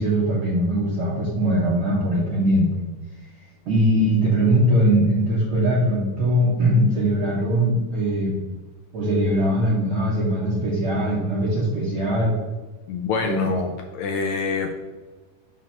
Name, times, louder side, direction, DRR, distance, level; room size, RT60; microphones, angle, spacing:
voice 1, 0.0-2.7 3.6-8.4 8.9-12.4 13.2-13.5, equal, 65° right, -5 dB, 1.3 m, -21 dB
voice 2, 12.9-14.7, left 4 dB, 80° left, 2 dB, 1.7 m, -26 dB
5.9 x 3.1 x 5.7 m, 1.2 s
omnidirectional pair, 3.7 m